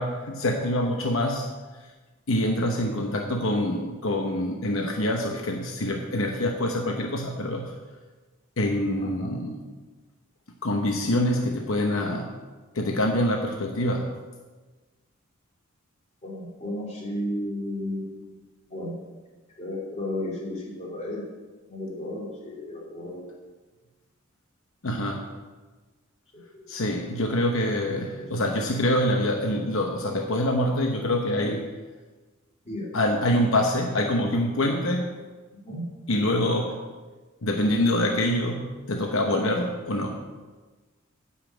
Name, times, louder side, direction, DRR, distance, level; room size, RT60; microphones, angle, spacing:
voice 1, 0.0-1.5 2.3-7.7 8.6-9.6 10.6-12.3 12.7-14.1 24.8-25.3 26.7-31.7 32.9-35.1 36.1-36.8 37.4-40.2, left 1 dB, 70° left, 2 dB, 0.9 m, -25 dB
voice 2, 9.0-9.4 16.2-18.3 18.7-19.0 19.6-21.3 21.7-23.2 26.5-26.7 28.1-28.2 32.6-32.9 35.6-35.8, left 1 dB, 30° left, -4 dB, 3.0 m, -33 dB
10.0 x 5.6 x 7.8 m, 1.3 s
head